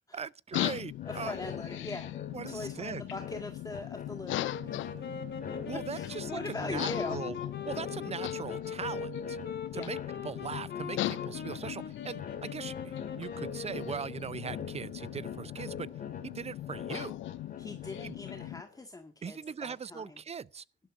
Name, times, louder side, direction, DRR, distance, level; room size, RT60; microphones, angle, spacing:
voice 1, 0.0-1.3 2.3-3.0 5.7-7.3 7.7-9.4 9.7-15.9 16.2-17.2 18.0-18.1 19.2-20.6, right 6 dB, 30° right, 0.5 m, -40 dB
sound 1, 0.5-18.6, left 15 dB, 75° left, 0.5 m, -39 dB
sound 2, 1.0-18.8, left 6 dB, 45° left, 3.1 m, -46 dB
voice 2, 1.0-2.1 2.5-4.8 5.7-7.3 9.7-9.9 17.6-20.2, left 2 dB, 20° left, 1.8 m, -41 dB
sound 3, 4.4-14.4, left 6 dB, 60° left, 3.2 m, -41 dB
17.5 x 11.5 x 2.5 m
cardioid pair, 90°, 20 cm